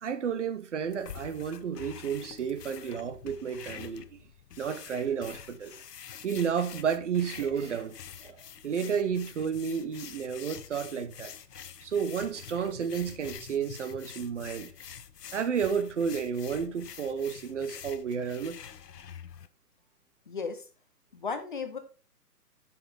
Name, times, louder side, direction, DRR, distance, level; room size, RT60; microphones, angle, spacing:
voice 1, 0.0-4.2 4.6-5.7 6.2-8.0 8.2-11.3 11.8-14.7 15.3-18.6, right 7 dB, 45° right, 0.9 m, -31 dB
sound 1, 0.8-19.5, left 8 dB, 75° left, 0.8 m, -46 dB
voice 2, 20.3-20.6 21.1-21.8, left 5 dB, 30° left, 0.6 m, -34 dB
7.7 x 6.0 x 3.3 m
figure-of-eight pair, 140°, 48 cm